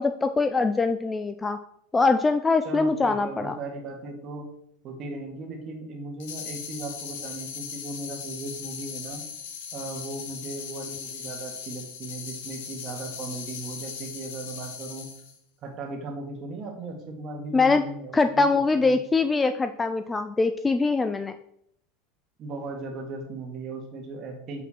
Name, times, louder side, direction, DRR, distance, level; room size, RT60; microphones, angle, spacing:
voice 1, 0.0-1.6 1.9-3.6 17.5-17.8 18.1-21.4, left 3 dB, 10° left, 9 dB, 0.3 m, -23 dB
voice 2, 2.6-4.5 4.8-9.2 9.7-15.1 15.6-19.0 22.4-24.6, right 3 dB, 35° right, 2 dB, 1.9 m, -37 dB
sound 1, 6.2-15.4, left 7 dB, 85° left, 1.6 m, -38 dB
7.0 x 5.9 x 4.3 m, 0.72 s
supercardioid pair, 150°, 0 cm